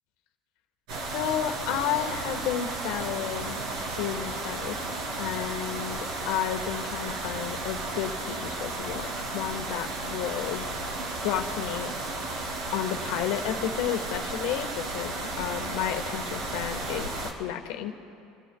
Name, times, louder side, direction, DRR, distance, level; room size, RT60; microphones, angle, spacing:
sound 1, 0.9-17.3, right 2 dB, 75° right, 2.8 m, -34 dB
voice 1, 1.1-10.7 11.2-11.9 12.7-18.0, left 10 dB, 75° left, 6 dB, 1.2 m, -32 dB
29.0 x 13.5 x 2.3 m, 2.5 s
supercardioid pair, 135°, 0 cm